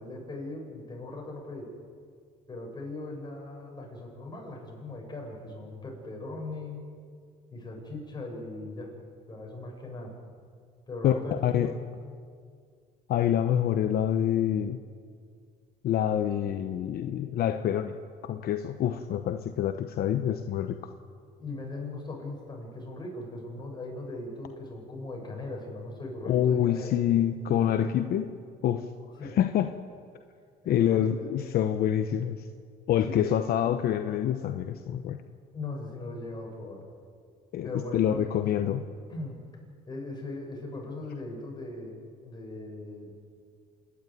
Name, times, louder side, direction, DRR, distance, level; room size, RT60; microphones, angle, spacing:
voice 1, 0.0-1.7 2.5-6.8 7.5-8.9 9.3-10.1 10.9-11.8 21.4-27.0 29.2-29.4 30.6-31.3 33.1-33.5 35.5-36.9 37.6-38.3 39.1-39.4 39.9-43.1, left 2 dB, 25° left, 0 dB, 7.1 m, -39 dB
voice 2, 11.0-11.7 13.1-14.8 15.8-17.9 18.2-20.8 26.2-28.3 28.6-28.9 29.2-29.7 30.7-32.5 32.9-35.2 37.5-38.9, left 10 dB, 65° left, 8 dB, 1.0 m, -26 dB
27.5 x 11.0 x 9.5 m, 2.1 s
cardioid pair, 110°, 17 cm